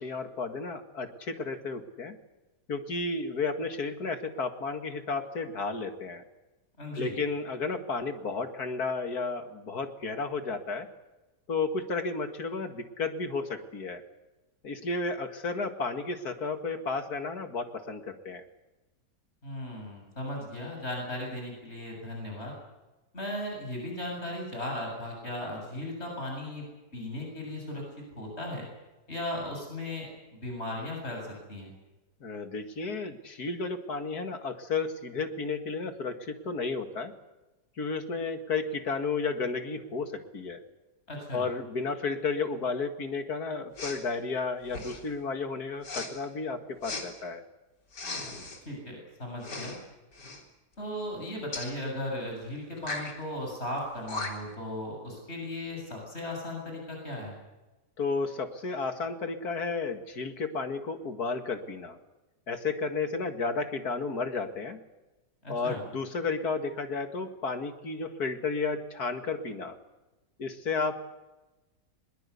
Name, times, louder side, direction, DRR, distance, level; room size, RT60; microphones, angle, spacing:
voice 1, 0.0-2.2 2.7-6.2 6.9-10.9 11.5-14.0 14.6-18.5 32.2-37.1 37.8-40.6 41.3-47.4 58.0-62.0 62.5-64.8 65.5-69.8 70.4-70.9, left 4 dB, 65° left, 7 dB, 2.5 m, -32 dB
voice 2, 6.8-7.1 19.4-22.5 23.1-26.6 26.9-27.8 28.1-28.7 29.1-31.7 41.1-41.5 48.6-49.8 50.8-57.3 65.4-65.8, left 1 dB, 40° left, 1 dB, 7.7 m, -36 dB
Respiratory sounds, 43.8-44.0 44.7-45.1 45.8-46.1 46.8-47.1 47.9-48.6 49.4-49.8 50.1-50.4 51.5-51.7 52.8-53.1 53.8-53.9 54.1-54.6, left 3 dB, 80° left, 4.1 m, -37 dB
22.5 x 22.0 x 8.3 m, 1.1 s
omnidirectional pair, 1.8 m